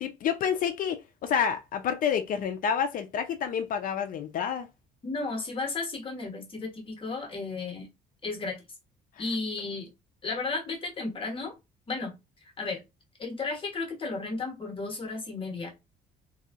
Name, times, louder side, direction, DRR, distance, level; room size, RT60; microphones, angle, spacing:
voice 1, 0.0-4.7, left 7 dB, 55° left, 0.5 m, -29 dB
voice 2, 5.0-7.9 8.2-8.7 9.2-9.9 10.2-11.5 11.9-12.1 12.6-12.8 13.2-15.7, left 3 dB, 30° left, 1.1 m, -33 dB
3.0 x 2.6 x 2.4 m
cardioid pair, 110°, 17 cm